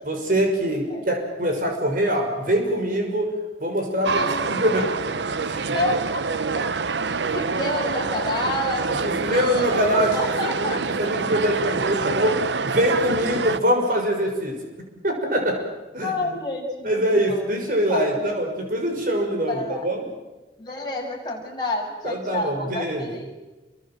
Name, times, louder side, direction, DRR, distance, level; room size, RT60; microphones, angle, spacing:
voice 1, 0.0-3.3 3.6-5.7 8.8-10.1 10.4-14.6 15.0-15.6 15.9-16.1 16.8-20.1 22.0-23.1, equal, 50° right, 3 dB, 6.3 m, -24 dB
sound 1, 4.0-13.6, right 4 dB, 90° right, 0.9 m, -26 dB
voice 2, 4.1-4.7 5.7-6.6 7.3-10.8 16.0-18.4 19.5-19.9 20.6-23.3, left 2 dB, 25° left, -1 dB, 7.2 m, -30 dB
29.0 x 23.5 x 7.8 m, 1.1 s
head